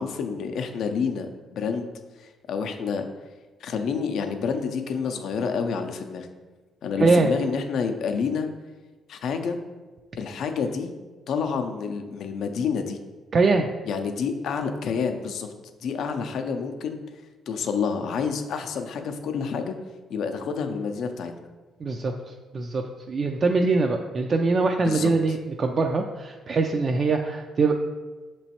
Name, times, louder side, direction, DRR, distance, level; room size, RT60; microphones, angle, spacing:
voice 1, 0.0-1.9 2.2-3.1 3.6-6.3 6.8-8.5 9.1-9.6 10.1-10.9 11.3-13.0 13.8-15.5 15.8-17.2 17.5-19.7 20.1-21.3 24.8-25.1, left 6 dB, 70° left, 6 dB, 0.4 m, -28 dB
voice 2, 7.0-7.3 13.3-13.7 21.8-22.1 22.5-27.7, right 3 dB, 45° right, 4 dB, 0.3 m, -23 dB
6.1 x 3.0 x 2.8 m, 1.3 s
cardioid pair, 90°, 0 cm